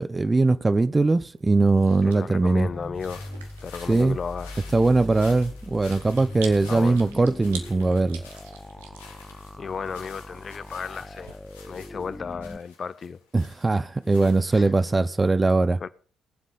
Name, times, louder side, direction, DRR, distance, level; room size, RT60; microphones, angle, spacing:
voice 1, 0.0-2.7 3.9-4.2 4.7-8.2 13.3-15.8, right 3 dB, 25° right, 0.8 m, -21 dB
Chewing mastication, 1.1-11.3, right 7 dB, 80° right, 1.3 m, -47 dB
voice 2, 2.0-3.3 3.6-4.6 6.5-7.1 9.6-11.4 11.7-13.2 14.5-14.7 15.8-15.9, left 5 dB, 45° left, 0.7 m, -34 dB
sound 1, 2.6-12.6, left 1 dB, 10° left, 1.0 m, -41 dB
sound 2, 2.9-14.9, left 5 dB, 85° left, 1.9 m, -50 dB
19.0 x 7.5 x 5.5 m
hypercardioid pair, 45°, 0 cm